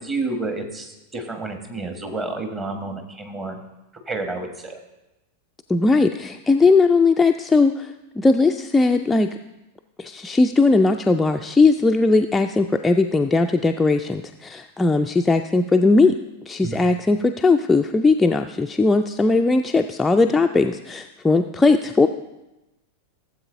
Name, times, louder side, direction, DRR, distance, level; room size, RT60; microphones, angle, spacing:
voice 1, 0.0-3.6 4.1-4.8 16.6-16.8, right 3 dB, 20° right, 5 dB, 1.5 m, -30 dB
voice 2, 5.7-9.4 10.0-16.2 16.5-22.1, left 3 dB, 10° left, 5 dB, 0.4 m, -18 dB
16.0 x 7.7 x 2.6 m, 0.97 s
figure-of-eight pair, 90°, 0 cm